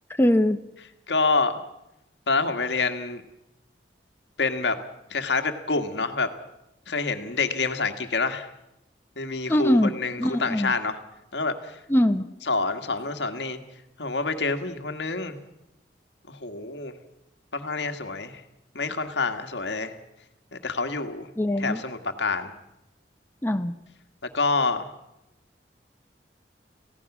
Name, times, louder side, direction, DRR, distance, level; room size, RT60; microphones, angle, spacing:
voice 1, 0.2-0.6 9.5-10.7 11.9-12.3 21.4-21.8 23.4-23.7, left 1 dB, 15° left, 7 dB, 0.7 m, -22 dB
voice 2, 1.1-1.5 2.3-3.2 4.4-4.8 5.1-6.3 6.9-8.5 9.2-11.0 11.3-11.8 12.5-13.6 14.0-15.4 16.3-16.9 17.5-18.4 18.7-19.9 20.5-21.3 21.6-22.5 24.3-24.9, left 3 dB, 75° left, 7 dB, 1.7 m, -27 dB
28.0 x 16.5 x 6.1 m, 0.89 s
head